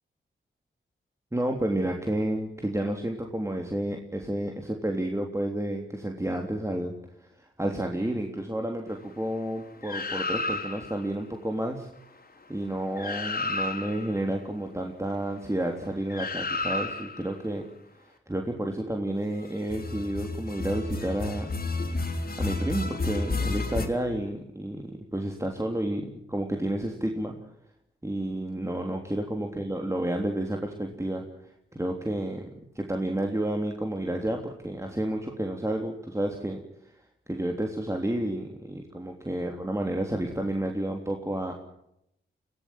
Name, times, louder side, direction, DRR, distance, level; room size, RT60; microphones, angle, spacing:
voice 1, 1.3-6.9 7.2-11.9 12.5-17.6 18.0-21.5 22.4-27.3 28.0-32.5 32.8-36.9 37.3-41.5, right 1 dB, 15° right, 2 dB, 3.4 m, -31 dB
sound 1, 9.8-11.0 12.6-12.7 13.0-14.1 16.1-17.3 19.6-23.9, left 3 dB, 45° left, 4.4 m, -31 dB
22.5 x 16.5 x 9.0 m, 0.80 s
cardioid pair, 55°, 20 cm